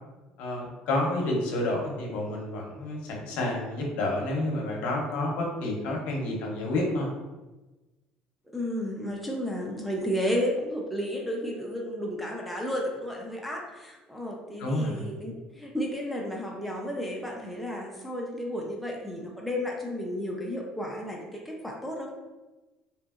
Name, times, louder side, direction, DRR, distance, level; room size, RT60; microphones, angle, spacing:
voice 1, 0.4-7.1 14.6-14.9, left 1 dB, 70° left, -1 dB, 0.7 m, -29 dB
voice 2, 8.5-22.2, equal, ahead, -2 dB, 0.4 m, -32 dB
2.8 x 2.6 x 2.3 m, 1.1 s
cardioid pair, 140°, 2 cm